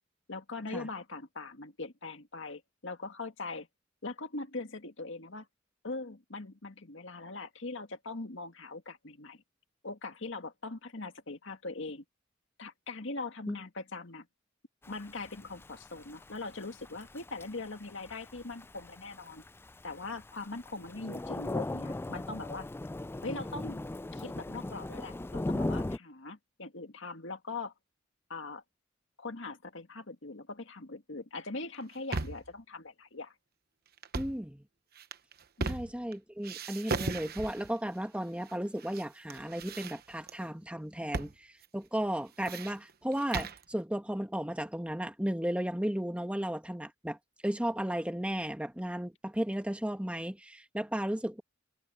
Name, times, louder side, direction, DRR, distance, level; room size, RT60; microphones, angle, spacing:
voice 1, 0.3-3.7 4.0-5.5 5.8-9.4 9.8-12.0 12.6-14.3 14.9-19.4 19.8-22.7 23.2-23.8 24.1-27.7 28.3-28.6 29.2-33.3 35.6-35.9, left 3 dB, 65° left, 2.1 m, -41 dB
Thunder / Rain, 14.8-26.0, left 2 dB, 10° left, 0.3 m, -38 dB
sound 1, 31.7-32.5 34.0-34.4 35.0-36.1 36.4-37.7 38.5-39.0 39.3-40.3 41.1-41.4 41.6-41.7 42.2-43.6, right 3 dB, 50° right, 1.0 m, -37 dB
voice 2, 34.1-34.6 35.6-47.2 47.4-51.4, equal, 5° right, 1.6 m, -34 dB
head